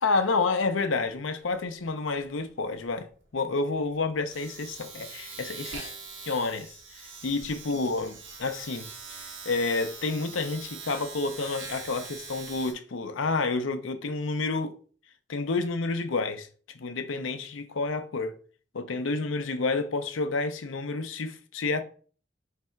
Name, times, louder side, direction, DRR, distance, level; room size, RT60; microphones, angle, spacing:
voice 1, 0.0-3.1 3.3-5.8 6.3-14.8 15.3-16.5 16.7-18.3 18.7-21.8, left 3 dB, 85° left, 0.6 m, -29 dB
Domestic sounds home sounds, 1.0-1.2 1.5-12.7, right 4 dB, 80° right, 1.2 m, -43 dB
3.6 x 3.3 x 4.4 m
head